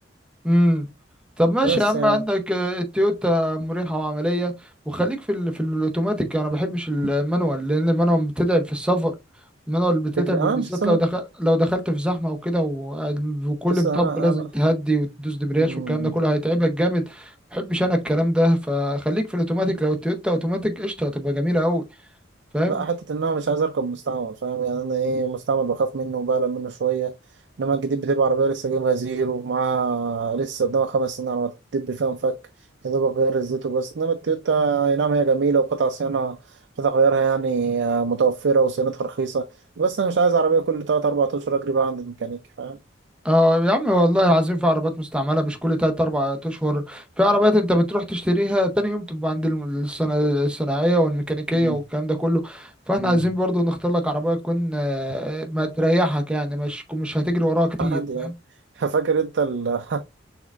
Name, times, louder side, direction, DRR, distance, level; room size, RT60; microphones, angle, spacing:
voice 1, 0.4-0.9 1.4-4.5 4.9-9.1 9.7-21.8 22.5-22.8 43.2-58.3, equal, 5° right, 0.7 m, -22 dB
voice 2, 1.6-2.2 10.2-11.0 13.7-14.4 15.6-16.1 22.7-27.1 27.6-32.4 32.8-39.5 39.8-42.8 51.5-51.8 53.0-53.2 57.8-58.3 58.8-60.0, right 5 dB, 65° right, 0.4 m, -23 dB
6.2 x 3.5 x 2.4 m
head